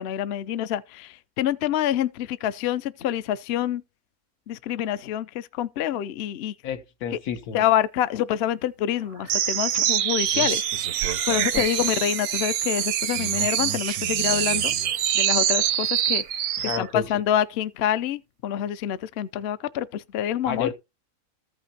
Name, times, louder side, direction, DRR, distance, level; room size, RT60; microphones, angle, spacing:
voice 1, 0.0-3.8 4.5-6.5 7.1-7.2 7.5-10.7 11.3-14.7 15.1-16.2 16.8-20.7, left 11 dB, 60° left, 0.7 m, -26 dB
voice 2, 6.6-7.7 11.5-11.6 16.6-17.1 20.4-20.7, left 7 dB, 80° left, 1.5 m, -30 dB
sound 1, 9.3-16.9, right 10 dB, 85° right, 1.2 m, -25 dB
14.5 x 5.8 x 2.8 m
omnidirectional pair, 1.6 m